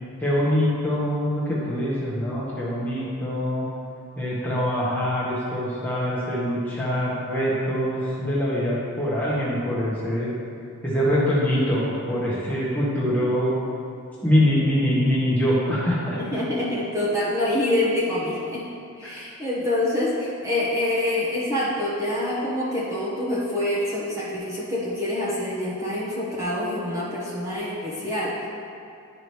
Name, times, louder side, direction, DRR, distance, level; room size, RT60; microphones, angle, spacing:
voice 1, 0.2-3.7 4.2-10.3 10.8-13.5 14.2-16.2 19.0-19.1, equal, 10° left, -8 dB, 1.2 m, -24 dB
voice 2, 16.1-18.6 19.0-28.5, left 1 dB, 15° right, -9 dB, 1.1 m, -26 dB
11.0 x 4.9 x 3.1 m, 2.6 s
head